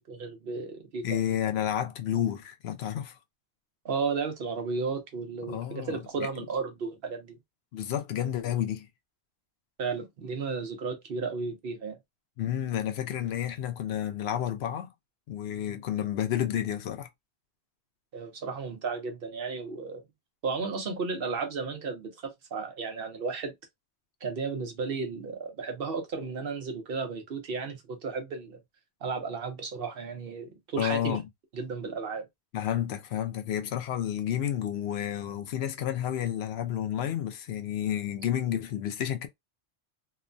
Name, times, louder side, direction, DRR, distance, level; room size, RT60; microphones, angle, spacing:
voice 1, 0.0-1.2 3.8-7.4 9.8-12.0 18.1-20.0 20.4-23.5 24.2-28.6 29.0-31.2 31.5-32.2, right 4 dB, 60° right, 0.9 m, -34 dB
voice 2, 1.0-3.2 5.5-6.3 7.7-8.9 12.4-14.9 15.3-17.1 30.8-31.2 32.5-39.3, left 10 dB, 75° left, 0.8 m, -30 dB
2.9 x 2.1 x 2.5 m
omnidirectional pair, 1.1 m